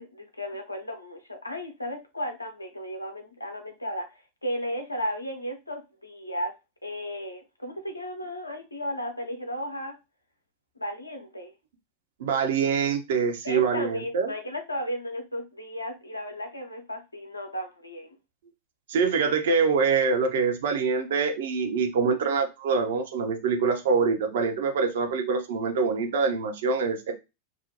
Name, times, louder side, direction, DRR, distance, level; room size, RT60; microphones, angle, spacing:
voice 1, 0.0-6.5 6.8-10.0 10.8-11.5 13.4-18.2, equal, 85° left, 4 dB, 0.6 m, -34 dB
voice 2, 12.2-14.3 18.9-27.1, right 5 dB, 60° right, 5 dB, 0.5 m, -25 dB
2.5 x 2.1 x 2.7 m, 0.25 s
figure-of-eight pair, 90°, 0 cm